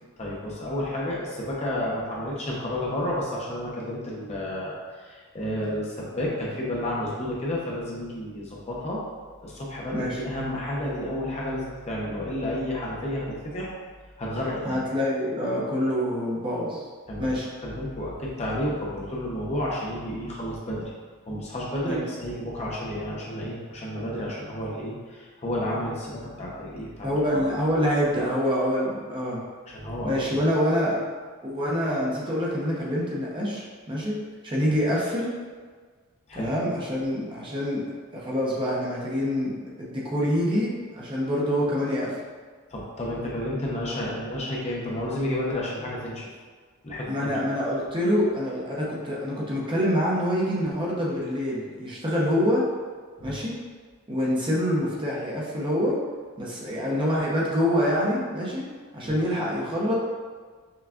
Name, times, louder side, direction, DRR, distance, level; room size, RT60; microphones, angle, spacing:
voice 1, 0.2-9.0 9.4-13.7 14.2-14.8 17.1-17.3 17.6-20.9 21.3-27.4 29.7-30.4 36.3-36.5 42.7-46.3 46.8-47.3 53.2-53.3 59.0-59.3, left 1 dB, 30° left, -4 dB, 0.6 m, -31 dB
voice 2, 14.6-16.8 17.2-17.5 21.9-22.0 26.8-29.4 30.0-31.0 31.4-35.3 36.3-37.8 38.1-42.1 47.1-52.7 53.2-53.5 54.1-56.0 56.4-58.6 58.9-60.0, equal, 20° right, -5 dB, 0.7 m, -26 dB
5.7 x 2.3 x 2.4 m, 1.5 s
head